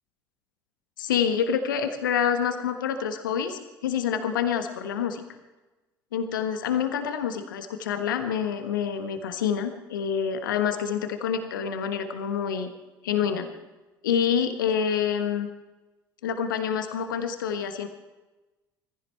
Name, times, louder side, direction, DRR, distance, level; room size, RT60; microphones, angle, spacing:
voice 1, 1.0-5.2 6.1-12.7 13.0-13.5 14.0-15.5 16.2-17.9, left 7 dB, 70° left, 8 dB, 1.3 m, -27 dB
19.5 x 15.0 x 4.5 m, 1.1 s
figure-of-eight pair, 60°, 11 cm